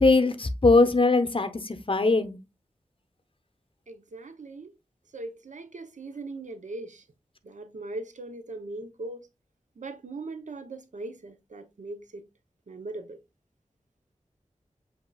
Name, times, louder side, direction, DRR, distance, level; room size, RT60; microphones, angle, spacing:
voice 1, 0.0-2.4, left 3 dB, 45° left, 0.8 m, -21 dB
voice 2, 3.9-4.7 5.1-7.0 7.4-9.3 9.8-12.2 12.7-13.2, right 2 dB, 75° right, 0.8 m, -39 dB
7.5 x 2.9 x 2.3 m
wide cardioid pair, 45°, 13 cm